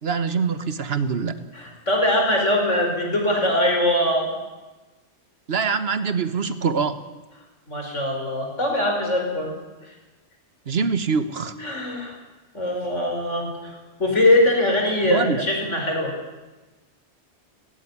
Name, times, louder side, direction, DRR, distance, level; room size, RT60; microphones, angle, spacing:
voice 1, 0.0-1.4 5.5-7.0 10.7-11.5 15.1-15.4, right 5 dB, 60° right, 12 dB, 1.4 m, -24 dB
voice 2, 1.5-4.3 7.7-9.5 9.8-9.9 11.6-12.2 12.5-16.1, left 1 dB, 80° left, 1 dB, 5.5 m, -22 dB
17.5 x 16.5 x 10.0 m, 1.2 s
omnidirectional pair, 1.2 m